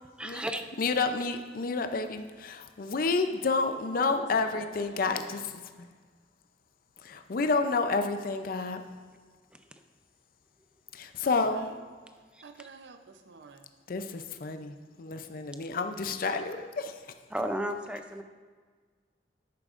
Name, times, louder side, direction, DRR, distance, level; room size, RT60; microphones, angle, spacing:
voice 1, 0.2-0.7 9.5-9.6 12.3-12.4 17.3-18.2, right 1 dB, 5° right, 7 dB, 0.5 m, -33 dB
voice 2, 0.8-5.5 5.8-5.9 7.0-8.8 10.9-11.7 13.9-17.1, left 4 dB, 55° left, 7 dB, 0.5 m, -30 dB
voice 3, 3.9-5.4 11.2-11.8 12.4-13.7, right 4 dB, 85° right, 7 dB, 0.6 m, -49 dB
11.5 x 8.6 x 2.5 m, 1.5 s
head